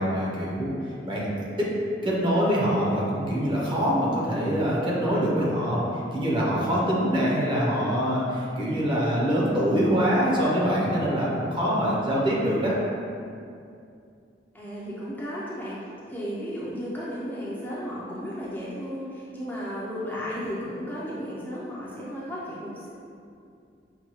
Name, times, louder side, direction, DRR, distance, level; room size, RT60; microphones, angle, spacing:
voice 1, 0.0-1.7 2.0-12.8, equal, 30° right, -5 dB, 0.7 m, -24 dB
voice 2, 14.5-22.9, equal, 10° left, -8 dB, 0.5 m, -34 dB
5.5 x 2.2 x 3.0 m, 2.4 s
head